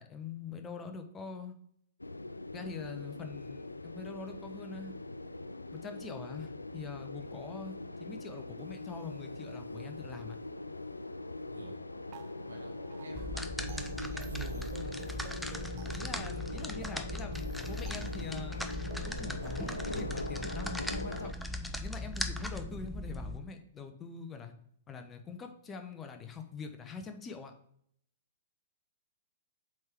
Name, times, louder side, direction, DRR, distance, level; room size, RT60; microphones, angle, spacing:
voice 1, 0.0-1.5 2.5-4.9 5.8-7.7 8.0-10.4 15.9-18.6 19.0-21.3 21.8-24.5 24.9-27.5, left 5 dB, 20° left, 7 dB, 0.9 m, -44 dB
sound 1, 2.0-21.3, left 2 dB, 90° left, 0.4 m, -42 dB
sound 2, 12.1-20.5, right 9 dB, 40° right, 0.6 m, -54 dB
voice 2, 12.5-14.9, right 3 dB, 80° right, 3 dB, 1.0 m, -45 dB
sound 3, 13.1-23.4, left 1 dB, 5° left, 0.6 m, -39 dB
7.7 x 3.7 x 4.5 m, 0.66 s
figure-of-eight pair, 110°, 0 cm